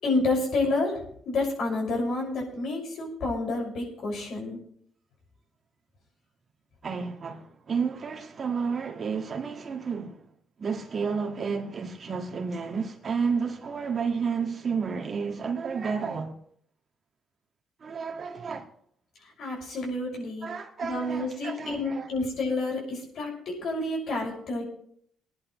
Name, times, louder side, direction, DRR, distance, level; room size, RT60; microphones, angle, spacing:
voice 1, 0.0-0.9 1.3-4.6 19.4-20.5 20.8-24.6, left 2 dB, 70° left, 6.2 m, -29 dB
voice 2, 6.8-10.2 10.6-16.3 17.8-18.7 20.4-22.1, right 5 dB, 45° right, 1.9 m, -31 dB
22.5 x 10.5 x 3.2 m
cardioid pair, 90°, 0 cm